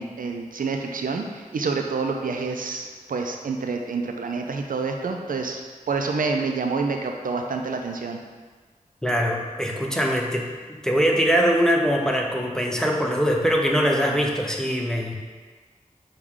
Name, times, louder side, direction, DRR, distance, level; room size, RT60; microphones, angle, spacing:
voice 1, 0.0-5.6 5.9-8.2, right 4 dB, 80° right, 3 dB, 0.4 m, -28 dB
voice 2, 9.0-10.5 10.8-15.2, equal, 5° left, 0 dB, 0.6 m, -22 dB
6.2 x 2.3 x 3.6 m, 1.4 s
wide cardioid pair, 55°, 14 cm